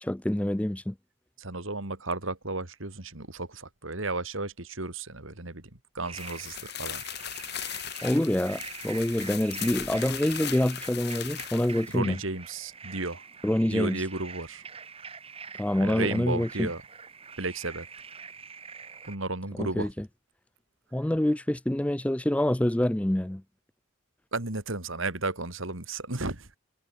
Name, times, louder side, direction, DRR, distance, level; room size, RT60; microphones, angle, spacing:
voice 1, 0.0-0.9 8.0-12.2 13.4-14.0 15.6-16.7 19.6-19.9 20.9-23.4, left 1 dB, 5° left, 0.4 m, -26 dB
voice 2, 1.4-7.0 11.9-13.2 13.6-14.7 15.8-16.8 17.4-17.9 19.0-19.9 24.3-26.5, right 2 dB, 70° right, 3.2 m, -33 dB
sound 1, 6.0-19.2, right 6 dB, 25° right, 1.2 m, -45 dB
sound 2, 6.1-12.0, left 11 dB, 50° left, 3.2 m, -38 dB
head